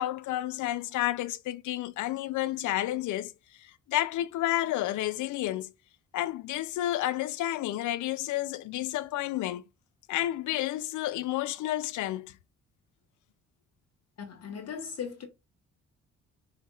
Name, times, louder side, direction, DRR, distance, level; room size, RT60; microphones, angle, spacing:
voice 1, 0.0-3.3 3.6-5.7 6.1-9.6 10.1-12.3, left 14 dB, 80° left, 0.5 m, -31 dB
voice 2, 14.2-15.3, left 7 dB, 55° left, 1.3 m, -38 dB
5.5 x 3.4 x 2.4 m
cardioid pair, 90°, 30 cm